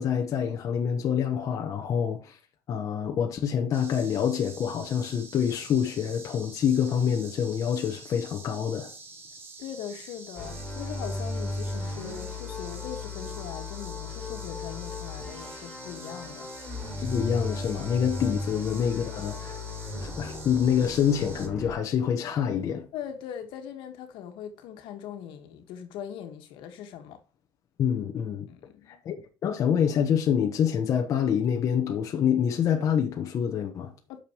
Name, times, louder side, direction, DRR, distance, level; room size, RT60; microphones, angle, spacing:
voice 1, 0.0-2.4 2.7-8.9 17.0-19.6 20.0-22.9 27.8-28.5 28.9-29.1 29.4-33.9, left 8 dB, 40° left, 1.1 m, -26 dB
sound 1, 3.7-21.5, right 3 dB, 25° right, 1.6 m, -47 dB
voice 2, 9.6-16.5 18.3-18.4 22.9-27.2 28.5-29.0 34.1-34.2, left 9 dB, 70° left, 1.7 m, -40 dB
sound 2, 10.4-21.7, left 2 dB, 10° left, 3.9 m, -36 dB
8.9 x 6.7 x 3.1 m
cardioid pair, 175°, 9 cm